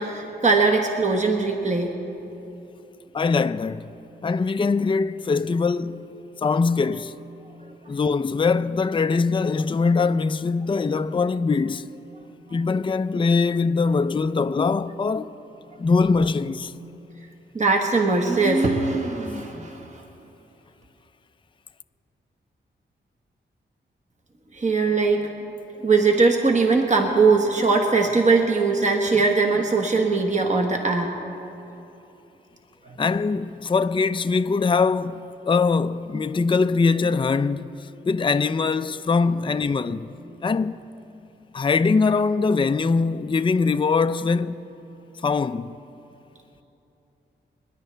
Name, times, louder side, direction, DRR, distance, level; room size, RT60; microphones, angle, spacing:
voice 1, 0.0-1.9 17.5-19.9 24.5-25.3 25.8-31.1, right 4 dB, 35° right, 1.4 m, -20 dB
voice 2, 3.1-4.0 4.2-6.1 6.4-7.2 7.9-11.9 12.5-15.3 15.8-16.7 33.0-40.1 40.4-40.8 41.5-44.7 45.2-45.7, left 4 dB, 25° left, 0.4 m, -22 dB
29.0 x 10.0 x 3.4 m
cardioid pair, 50°, 20 cm